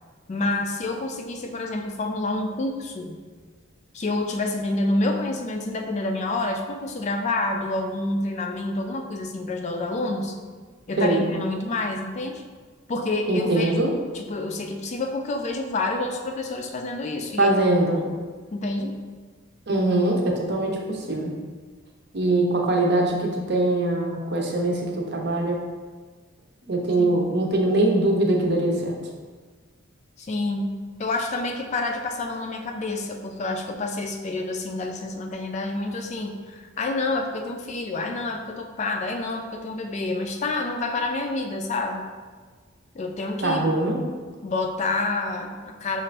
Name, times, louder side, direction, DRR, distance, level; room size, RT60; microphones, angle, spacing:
voice 1, 0.3-3.2 3.9-10.4 10.9-12.4 12.9-13.7 14.1-17.5 17.9-18.1 18.5-18.9 27.0-27.3 30.2-42.1 42.9-43.7 44.4-46.0, left 2 dB, 35° left, 3 dB, 0.3 m, -28 dB
voice 2, 13.3-13.9 17.4-18.0 19.7-21.3 22.1-25.6 26.6-28.9 43.4-44.0, right 2 dB, 55° right, -1 dB, 0.7 m, -22 dB
5.9 x 2.5 x 3.2 m, 1.5 s
head